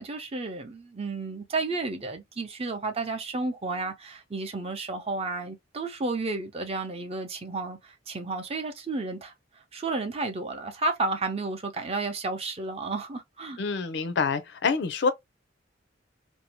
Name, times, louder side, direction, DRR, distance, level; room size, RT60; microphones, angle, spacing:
voice 1, 0.0-9.3 9.7-13.6, right 3 dB, 30° right, 0.6 m, -32 dB
voice 2, 13.6-15.1, left 4 dB, 65° left, 0.5 m, -26 dB
2.6 x 2.0 x 2.8 m
head